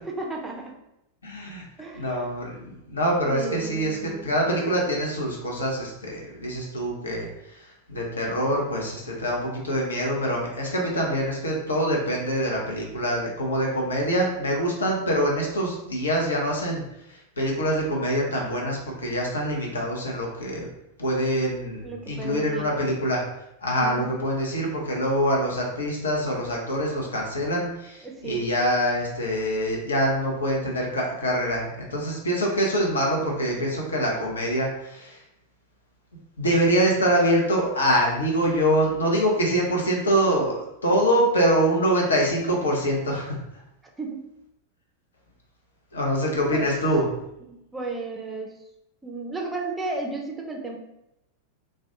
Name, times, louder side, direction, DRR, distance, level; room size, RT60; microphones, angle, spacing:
voice 1, 0.0-0.8 1.8-2.2 3.2-4.3 21.8-22.7 23.8-24.1 28.0-28.5 44.0-44.3 46.5-46.8 47.5-48.6 49.0-50.8, right 3 dB, 15° right, 0 dB, 0.4 m, -33 dB
voice 2, 1.2-1.6 1.9-7.3 7.9-16.8 17.1-20.7 21.0-23.2 23.6-35.2 36.4-43.4 45.9-47.0, equal, 70° left, -1 dB, 0.6 m, -25 dB
2.3 x 2.1 x 2.7 m, 0.85 s
figure-of-eight pair, 90°, 0 cm